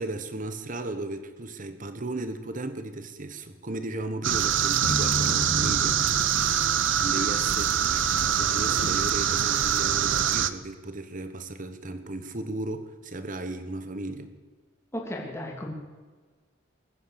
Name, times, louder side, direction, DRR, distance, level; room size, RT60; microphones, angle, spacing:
voice 1, 0.0-6.3 7.0-7.7 8.3-14.3, right 2 dB, 45° right, 10 dB, 1.3 m, -35 dB
sound 1, 4.2-10.5, right 9 dB, 70° right, 0.7 m, -24 dB
sound 2, 4.8-8.0, left 1 dB, 45° left, 2.3 m, -35 dB
voice 2, 14.9-15.7, left 1 dB, 15° left, -1 dB, 2.9 m, -34 dB
21.0 x 9.4 x 6.9 m, 1.4 s
head